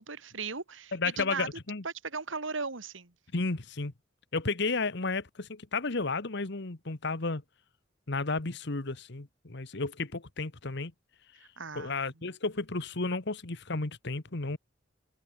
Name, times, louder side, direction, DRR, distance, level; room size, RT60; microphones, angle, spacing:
voice 1, 0.0-1.5 1.8-3.1 11.6-12.1, right 4 dB, 85° right, 2.4 m, -37 dB
voice 2, 0.9-1.8 3.3-3.9 4.3-7.4 8.1-10.9 11.7-14.6, left 3 dB, 65° left, 1.5 m, -32 dB
head